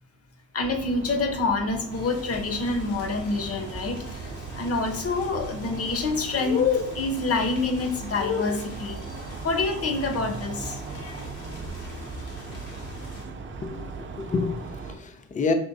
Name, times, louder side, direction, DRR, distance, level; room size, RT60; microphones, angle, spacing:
voice 1, 0.5-9.0 9.4-11.2, left 3 dB, 50° left, 5 dB, 1.0 m, -27 dB
sound 1, 0.6-15.0, right 4 dB, 40° right, 0.6 m, -39 dB
sound 2, 1.9-13.3, equal, 80° left, 1.6 m, -43 dB
voice 2, 13.5-15.5, left 4 dB, 25° left, 7 dB, 0.5 m, -29 dB
5.5 x 3.1 x 2.7 m, 0.73 s
cardioid pair, 90°, 30 cm